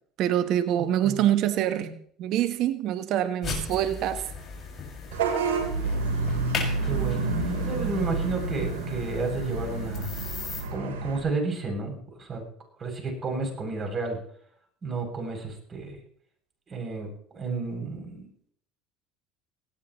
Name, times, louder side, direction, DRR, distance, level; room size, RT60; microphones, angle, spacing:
voice 1, 0.2-4.2, right 11 dB, 60° right, 1.3 m, -25 dB
sound 1, 3.4-10.6, left 4 dB, 45° left, 6.6 m, -37 dB
Vehicle horn car horn honking / Bus, 5.1-11.2, right 3 dB, 85° right, 4.1 m, -29 dB
voice 2, 6.8-7.3 7.7-10.1 10.7-12.4 12.8-14.2 14.8-16.0 16.7-17.1 17.3-18.3, right 3 dB, 35° right, 7.9 m, -31 dB
19.5 x 17.0 x 3.3 m
hypercardioid pair, 75°, 0 cm